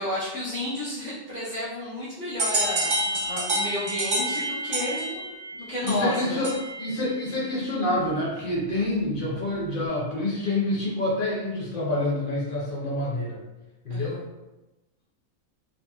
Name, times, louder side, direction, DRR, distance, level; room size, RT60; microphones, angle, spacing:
voice 1, 0.0-6.4 8.7-8.9 13.9-14.3, left 1 dB, 25° left, -11 dB, 1.0 m, -32 dB
sound 1, 2.4-6.9, right 1 dB, 45° right, 0.8 m, -28 dB
voice 2, 5.8-13.4 13.8-14.2, left 1 dB, 50° left, -5 dB, 0.7 m, -27 dB
2.8 x 2.7 x 2.3 m, 1.0 s
omnidirectional pair, 1.4 m